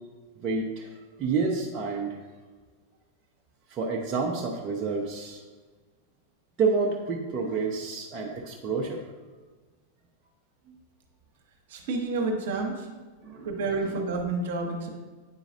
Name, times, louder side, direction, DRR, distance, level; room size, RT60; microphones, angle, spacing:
voice 1, 0.4-0.9 1.2-2.2 3.7-5.4 6.6-9.0 10.7-10.8 13.2-13.9, right 4 dB, 30° right, -1 dB, 0.7 m, -29 dB
voice 2, 11.7-12.9 13.4-14.9, right 3 dB, 55° right, 3 dB, 1.0 m, -29 dB
9.0 x 4.9 x 2.6 m, 1.4 s
figure-of-eight pair, 90°, 0 cm